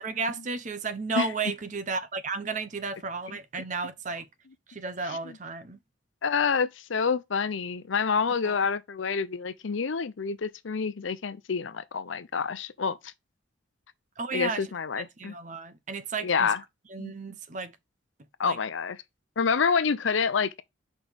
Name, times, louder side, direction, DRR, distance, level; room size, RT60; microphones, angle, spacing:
voice 1, 0.0-4.3 4.7-5.8 8.4-8.6 14.2-14.6 14.9-16.5 16.9-17.8 18.4-18.6, right 4 dB, 40° right, 0.7 m, -33 dB
voice 2, 6.2-13.1 14.3-15.3 16.2-16.6 17.0-17.1 18.4-19.0 19.4-20.6, left 5 dB, 75° left, 0.6 m, -28 dB
6.1 x 5.3 x 3.4 m
head